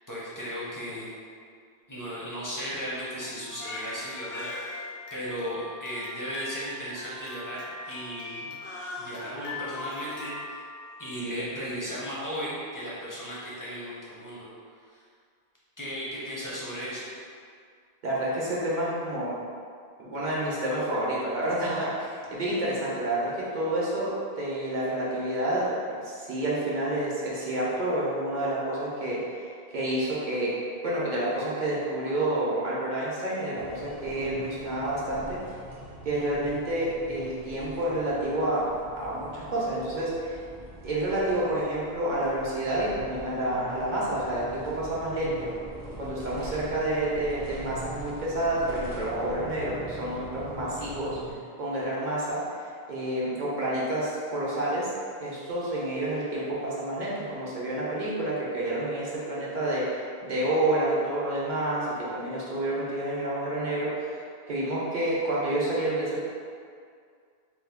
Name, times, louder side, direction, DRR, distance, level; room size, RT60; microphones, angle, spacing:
voice 1, 0.1-1.2 1.9-4.8 5.1-8.6 9.0-10.6 11.0-14.5 14.9-15.0 15.8-17.1, equal, 25° left, -7 dB, 0.5 m, -36 dB
Crying sobbing, 3.2-11.4, left 2 dB, 75° left, 0.9 m, -40 dB
voice 2, 18.0-19.3 20.0-24.1 24.4-30.5 30.8-35.4 36.0-38.7 39.0-40.4 40.8-45.5 46.0-51.2 51.6-54.9 55.2-63.9 64.5-66.2, right 1 dB, 50° right, -7 dB, 0.8 m, -29 dB
sound 1, 33.6-51.3, equal, 35° right, 0.3 m, -43 dB
2.7 x 2.3 x 3.6 m, 2.2 s
omnidirectional pair, 1.0 m